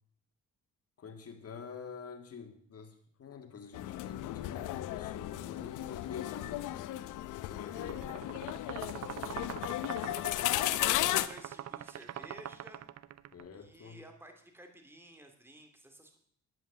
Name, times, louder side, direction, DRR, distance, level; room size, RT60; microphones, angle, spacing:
voice 1, 1.0-6.7 7.3-8.3 13.3-14.0, left 6 dB, 50° left, 5 dB, 2.0 m, -47 dB
sound 1, 3.7-11.3, left 14 dB, 85° left, 0.7 m, -35 dB
sound 2, 7.7-13.4, right 11 dB, 60° right, 0.6 m, -44 dB
voice 2, 11.1-12.8 13.5-16.2, right 1 dB, 5° right, 4 dB, 2.5 m, -53 dB
11.0 x 9.2 x 6.8 m, 0.63 s
cardioid pair, 90°, 30 cm